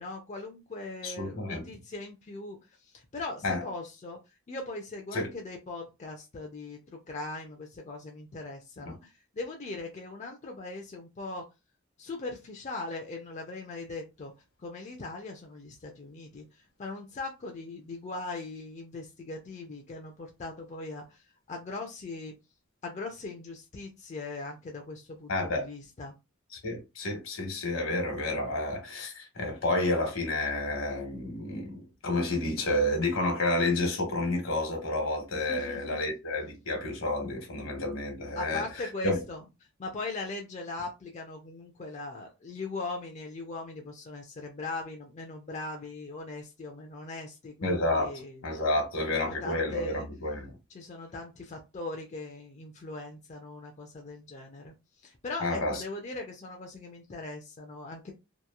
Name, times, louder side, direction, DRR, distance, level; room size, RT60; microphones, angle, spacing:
voice 1, 0.0-4.2 4.5-11.4 12.0-14.3 14.6-16.5 16.8-21.2 21.5-22.3 22.8-26.1 35.3-36.0 38.4-39.4 39.8-48.4 49.1-50.1 50.7-54.7 55.0-58.1, left 3 dB, 35° left, 0.4 m, -40 dB
voice 2, 1.0-1.6 3.4-3.6 5.1-5.3 8.9-9.0 25.3-25.7 26.6-38.6 39.0-39.2 47.6-50.5 55.4-55.8, left 2 dB, 75° left, 1.1 m, -30 dB
2.9 x 2.3 x 2.3 m
head